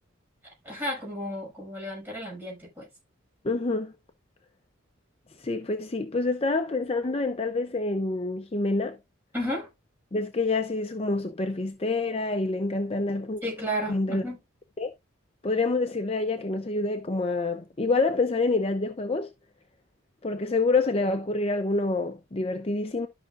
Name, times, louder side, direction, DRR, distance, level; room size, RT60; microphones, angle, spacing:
voice 1, 0.4-2.9 9.3-9.7 13.4-14.4, equal, 10° right, 6.0 m, -33 dB
voice 2, 3.4-3.9 5.4-9.0 10.1-13.4 13.9-14.2 14.8-14.9 15.4-19.3 20.2-23.1, left 3 dB, 30° left, 0.5 m, -27 dB
13.0 x 5.7 x 2.5 m
head